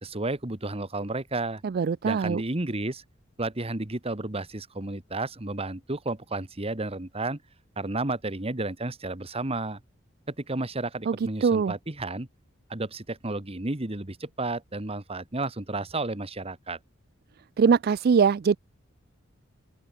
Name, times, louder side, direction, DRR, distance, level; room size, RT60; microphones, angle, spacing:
voice 1, 0.0-1.6 2.0-3.0 3.4-7.4 7.8-9.8 10.3-12.3 12.7-16.8, right 2 dB, 30° right, 1.6 m, -32 dB
voice 2, 1.6-2.4 11.1-11.7 17.6-18.6, right 6 dB, 50° right, 0.4 m, -22 dB
open air
head